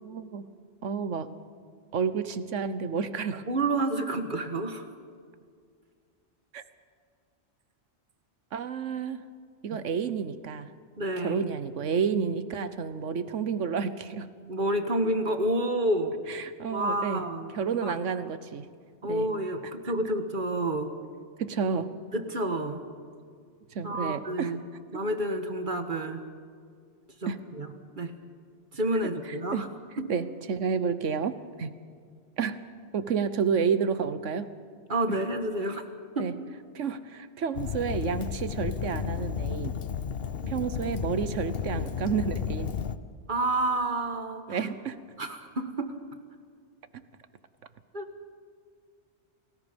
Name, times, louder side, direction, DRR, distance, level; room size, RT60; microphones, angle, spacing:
voice 1, 0.0-0.4 0.8-1.3 1.9-3.4 6.5-6.6 8.5-9.2 9.6-10.7 11.2-14.3 16.3-17.2 17.5-18.7 19.0-19.3 21.4-21.9 23.7-24.5 27.3-27.4 29.5-29.6 30.1-31.7 32.4-32.6 32.9-34.5 35.1-35.2 36.2-36.3 36.7-39.7 40.5-42.7 44.5-45.0, right 6 dB, 90° right, 13 dB, 1.4 m, -30 dB
voice 2, 3.5-4.9 11.0-11.4 14.5-16.2 16.7-17.5 17.8-17.9 19.0-20.9 22.1-22.8 23.8-24.6 24.9-26.2 27.2-27.7 28.0-28.2 28.7-29.7 30.0-30.1 34.9-35.8 36.1-36.3 40.4-40.5 43.3-44.6 45.2-45.9 47.9-48.1, right 1 dB, 45° right, 7 dB, 1.7 m, -29 dB
Fire, 37.5-43.0, left 7 dB, 55° left, 1.0 m, -33 dB
28.5 x 19.5 x 5.3 m, 2.1 s
omnidirectional pair, 1.2 m